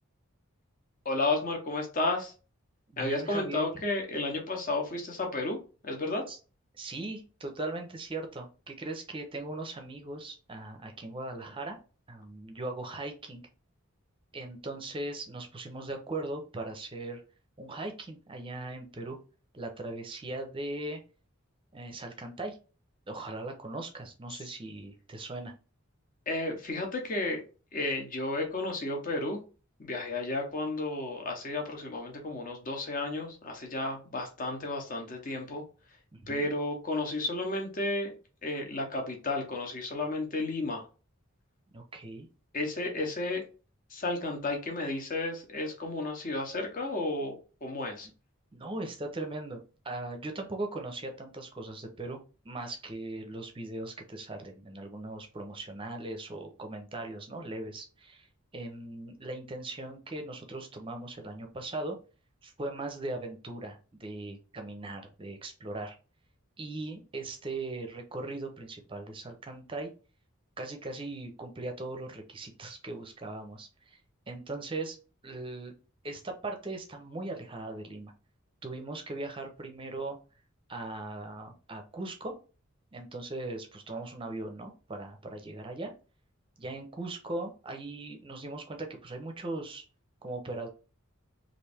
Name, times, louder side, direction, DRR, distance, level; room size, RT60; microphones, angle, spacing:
voice 1, 1.0-2.3 3.0-5.6 5.8-6.2 24.3-24.4 26.3-27.4 27.7-29.4 29.8-35.6 36.3-38.1 38.4-40.8 42.5-43.4 43.9-48.1, left 2 dB, 40° left, 2 dB, 0.9 m, -32 dB
voice 2, 2.9-3.7 6.3-6.4 6.8-11.8 12.1-13.4 14.3-17.2 17.6-19.2 19.5-21.0 21.7-22.6 23.1-25.5 36.1-36.5 41.7-42.3 48.5-52.2 52.4-58.3 58.5-62.0 62.4-66.0 66.6-69.9 70.6-74.0 74.3-75.0 75.2-75.7 76.0-78.1 78.6-80.2 80.7-82.4 82.9-85.9 86.6-89.8 90.2-90.7, right 2 dB, 25° right, 4 dB, 0.6 m, -39 dB
3.1 x 2.5 x 3.4 m, 0.35 s
head